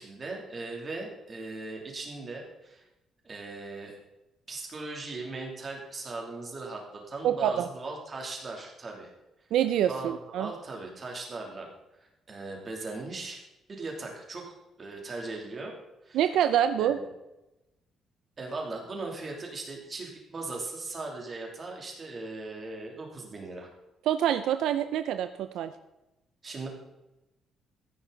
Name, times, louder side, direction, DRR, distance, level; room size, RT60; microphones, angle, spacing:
voice 1, 0.0-2.8 3.2-4.0 4.5-9.1 9.9-10.1 10.4-11.7 12.3-13.4 13.7-14.4 14.8-15.7 16.0-16.2 16.8-17.1 18.4-23.7 26.4-26.7, right 3 dB, 30° right, 0 dB, 3.0 m, -38 dB
voice 2, 7.2-7.7 9.5-10.5 16.1-17.0 24.1-25.7, right 10 dB, 80° right, 10 dB, 0.6 m, -26 dB
14.0 x 10.0 x 4.0 m, 0.95 s
cardioid pair, 160°, 0 cm